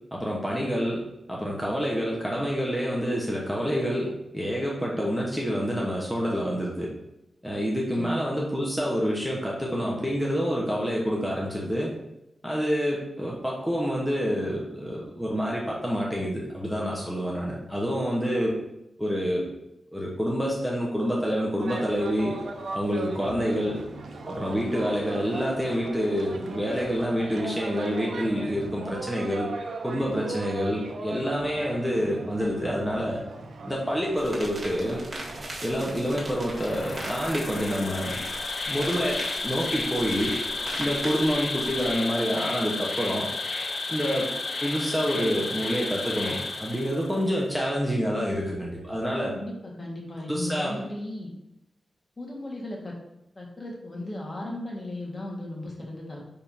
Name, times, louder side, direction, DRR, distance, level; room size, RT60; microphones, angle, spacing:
voice 1, 0.1-6.9 7.4-11.9 12.4-18.6 19.0-19.5 19.9-22.4 22.7-23.8 24.3-29.5 29.8-33.2 33.6-35.0 35.6-38.2 38.7-40.4 40.8-43.3 43.9-44.3 44.6-49.4 50.3-50.8, equal, ahead, -4 dB, 1.1 m, -27 dB
sound 1, 21.6-37.4, right 3 dB, 85° right, 0.7 m, -38 dB
sound 2, 34.2-41.9, right 1 dB, 45° right, 1.7 m, -40 dB
Insect, 36.5-47.3, left 3 dB, 60° left, 0.8 m, -32 dB
voice 2, 49.3-51.3 52.2-52.9 53.3-56.2, left 1 dB, 35° left, -2 dB, 1.7 m, -36 dB
9.6 x 3.7 x 2.8 m, 0.88 s
wide cardioid pair, 90°, 0 cm